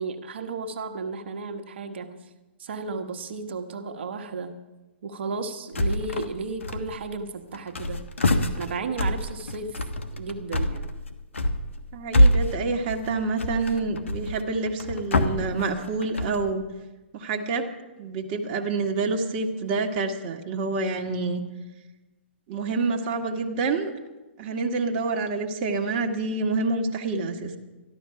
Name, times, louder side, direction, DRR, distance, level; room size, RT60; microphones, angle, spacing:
voice 1, 0.0-2.3 2.6-4.6 5.0-8.0 8.5-9.8 10.1-10.9, right 4 dB, 65° right, 7 dB, 1.3 m, -33 dB
sound 1, 5.7-6.3 6.6-7.2 7.5-16.5, left 1 dB, 85° left, 1.2 m, -25 dB
voice 2, 11.9-16.6 17.1-17.7 18.0-21.4 22.5-23.9 24.4-27.6, right 3 dB, 40° right, 2 dB, 1.5 m, -27 dB
13.5 x 12.0 x 5.7 m, 1.1 s
hypercardioid pair, 125°, 7 cm